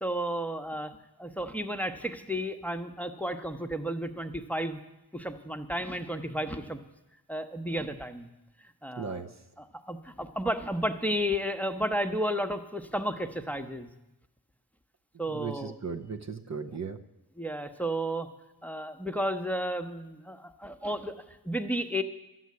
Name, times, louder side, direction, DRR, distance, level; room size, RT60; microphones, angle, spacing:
voice 1, 0.0-4.8 5.1-6.8 7.3-8.3 8.8-9.2 9.6-13.9 15.2-15.7 17.4-18.3 18.6-22.0, equal, 5° left, 7 dB, 0.9 m, -32 dB
voice 2, 9.0-9.3 15.3-17.0, right 5 dB, 45° right, 4 dB, 0.8 m, -36 dB
12.0 x 7.6 x 9.5 m, 0.94 s
wide cardioid pair, 55°, 39 cm